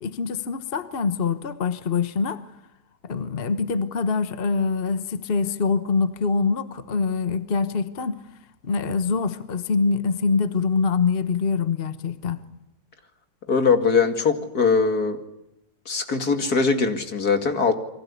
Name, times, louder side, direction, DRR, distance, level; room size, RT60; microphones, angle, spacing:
voice 1, 0.0-2.4 3.0-8.2 8.6-12.4, left 5 dB, 40° left, 11 dB, 1.2 m, -24 dB
voice 2, 13.5-15.2 15.9-17.7, left 5 dB, 70° left, 6 dB, 2.8 m, -21 dB
29.5 x 23.0 x 8.4 m, 0.86 s
omnidirectional pair, 1.7 m